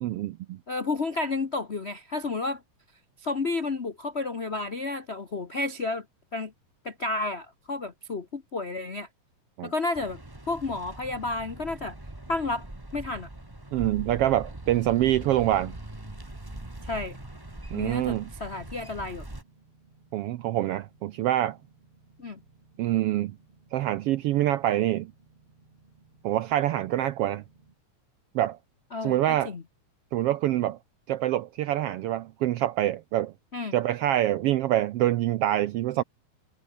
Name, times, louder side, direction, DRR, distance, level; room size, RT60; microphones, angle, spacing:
voice 1, 0.0-0.6 9.6-9.7 13.7-15.8 17.7-18.3 20.1-21.6 22.8-23.3 23.7-25.1 26.2-27.4 28.3-28.6 29.0-29.5 30.1-30.8 31.1-33.3 33.7-36.0, right 13 dB, 80° right, 1.3 m, -25 dB
voice 2, 0.7-2.6 3.2-6.0 6.3-6.5 6.8-9.1 9.6-10.2 10.5-11.9 12.3-12.6 12.9-13.3 16.8-17.2 17.7-19.3 22.2-22.4 28.9-29.6 33.5-33.8, left 3 dB, 90° left, 0.5 m, -31 dB
sound 1, 9.9-19.4, right 1 dB, 10° right, 1.8 m, -42 dB
sound 2, 14.2-27.7, right 3 dB, 45° right, 5.9 m, -60 dB
omnidirectional pair, 3.4 m